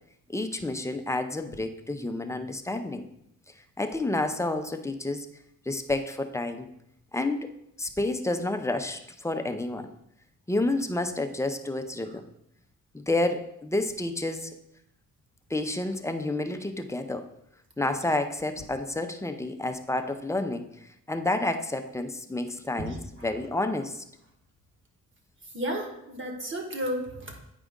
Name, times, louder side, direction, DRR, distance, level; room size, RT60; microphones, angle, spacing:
voice 1, 0.3-3.0 3.8-5.3 5.7-6.7 7.1-7.5 7.8-9.9 10.5-12.2 12.9-14.5 15.5-17.3 17.8-20.7 21.1-23.0 23.2-24.0, left 2 dB, 10° left, 7 dB, 0.5 m, -29 dB
voice 2, 22.8-23.3 25.5-27.4, equal, 40° right, 2 dB, 1.6 m, -33 dB
9.0 x 4.9 x 3.7 m, 0.78 s
cardioid pair, 110°, 31 cm